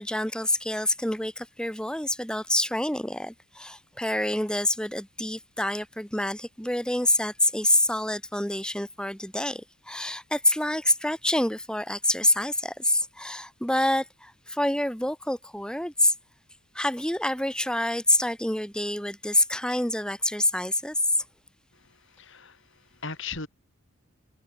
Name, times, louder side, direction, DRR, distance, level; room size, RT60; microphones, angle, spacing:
voice 1, 0.0-16.1 16.7-21.0, left 1 dB, 5° left, 2.8 m, -27 dB
voice 2, 21.7-23.5, left 5 dB, 55° left, 4.4 m, -39 dB
head